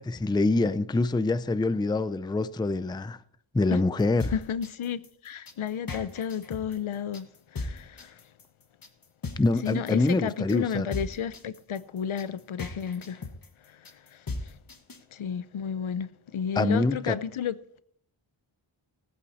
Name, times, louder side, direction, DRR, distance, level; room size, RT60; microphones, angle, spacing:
voice 1, 0.0-3.2 3.5-4.3 9.4-10.9 16.6-17.2, left 2 dB, 10° left, 0.4 m, -25 dB
sound 1, 4.0-15.0, left 3 dB, 45° left, 1.4 m, -37 dB
voice 2, 4.3-7.3 7.5-8.1 9.6-13.2 15.1-17.5, left 8 dB, 70° left, 0.7 m, -32 dB
17.5 x 8.5 x 4.2 m
wide cardioid pair, 85°, 50 cm